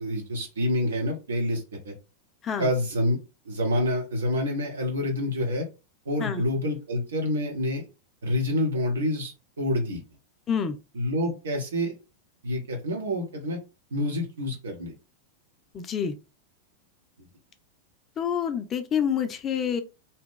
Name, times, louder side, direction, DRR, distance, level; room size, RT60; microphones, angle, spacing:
voice 1, 0.0-1.9 2.6-3.2 3.5-5.7 6.0-7.9 8.2-10.0 10.9-11.9 12.4-13.6 13.9-14.9, left 1 dB, 65° right, 1.0 m, -27 dB
voice 2, 15.7-16.1 18.2-19.8, left 7 dB, 25° left, 0.4 m, -27 dB
2.8 x 2.3 x 3.6 m
figure-of-eight pair, 90°, 0 cm